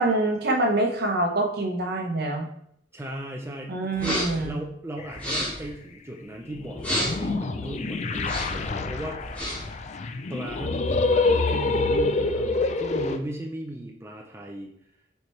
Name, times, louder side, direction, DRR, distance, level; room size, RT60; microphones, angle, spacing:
voice 1, 0.0-2.5 3.7-4.6, right 2 dB, 60° right, 3 dB, 1.0 m, -25 dB
voice 2, 2.9-9.2 10.3-14.7, right 1 dB, 15° right, 0 dB, 0.5 m, -36 dB
sound 1, 3.9-4.5 5.1-5.7 6.8-7.3 8.1-8.7 9.2-9.7, equal, 10° left, 2.3 m, -30 dB
sound 2, 5.0-5.3 6.5-13.2, left 3 dB, 40° left, 0.4 m, -26 dB
6.7 x 4.4 x 3.2 m, 0.70 s
head